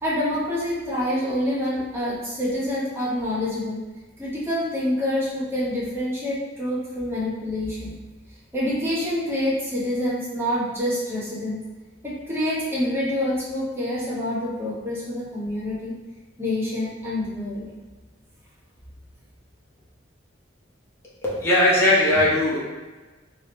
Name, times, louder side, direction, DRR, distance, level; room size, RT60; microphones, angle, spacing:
voice 1, 0.0-3.8 4.2-8.0 8.5-11.6 12.0-15.9 16.4-17.7, left 1 dB, 15° right, -7 dB, 1.0 m, -26 dB
voice 2, 21.2-22.6, left 1 dB, 15° left, -8 dB, 1.0 m, -19 dB
3.5 x 2.9 x 3.2 m, 1.2 s
head